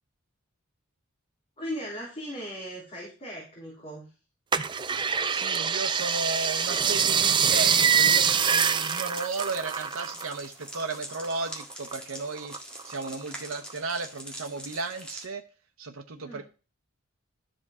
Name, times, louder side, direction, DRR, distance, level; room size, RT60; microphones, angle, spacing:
voice 1, 1.6-4.1 16.1-16.4, equal, 30° left, 3.4 m, -38 dB
sound 1, 4.5-10.4 10.6-11.9 12.4-13.2 13.7-13.8, right 7 dB, 25° right, 0.4 m, -25 dB
voice 2, 5.3-12.5 12.8-15.4 15.8-16.4, right 3 dB, 90° right, 0.8 m, -34 dB
sound 2, 5.6-15.2, equal, 5° left, 1.8 m, -44 dB
12.0 x 5.2 x 3.6 m
head